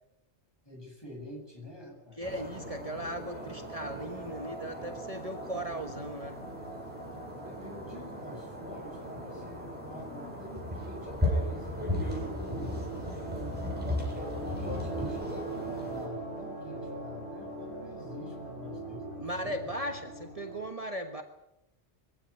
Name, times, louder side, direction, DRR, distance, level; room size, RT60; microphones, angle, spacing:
voice 1, 0.6-2.3 2.6-2.7 7.4-13.6 14.2-19.7, left 1 dB, 20° left, 1 dB, 7.5 m, -47 dB
sound 1, 2.2-16.1, left 1 dB, 10° right, 7.5 m, -37 dB
voice 2, 2.2-6.4 19.2-21.2, right 1 dB, 35° right, 5 dB, 1.5 m, -37 dB
sound 2, 2.3-20.7, right 2 dB, 75° left, 5.8 m, -43 dB
23.0 x 16.5 x 9.8 m, 0.89 s
omnidirectional pair, 1.1 m